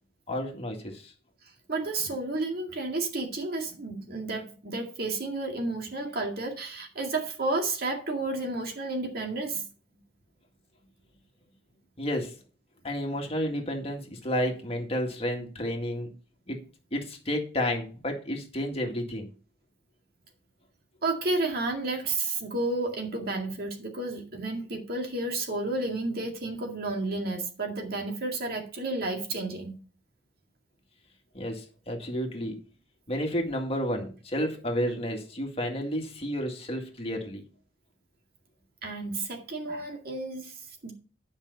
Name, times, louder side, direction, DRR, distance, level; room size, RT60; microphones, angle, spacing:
voice 1, 0.3-1.1 12.0-12.4 12.8-16.1 16.5-16.6 16.9-19.3 31.3-32.6 33.1-37.4, equal, 35° left, 2.0 m, -31 dB
voice 2, 1.7-9.7 21.0-29.8 38.8-40.5 40.8-40.9, right 2 dB, 55° right, 2.1 m, -31 dB
10.5 x 5.5 x 5.3 m
head